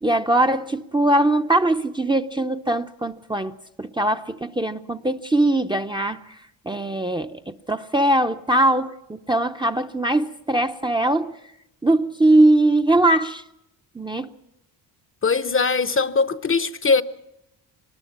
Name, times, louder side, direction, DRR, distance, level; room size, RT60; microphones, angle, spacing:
voice 1, 0.0-6.2 6.7-11.3 11.8-13.4 13.9-14.3, right 1 dB, 10° right, 0.6 m, -21 dB
voice 2, 15.2-17.0, left 4 dB, 30° left, 0.7 m, -21 dB
24.0 x 20.0 x 5.8 m
cardioid pair, 75°, 44 cm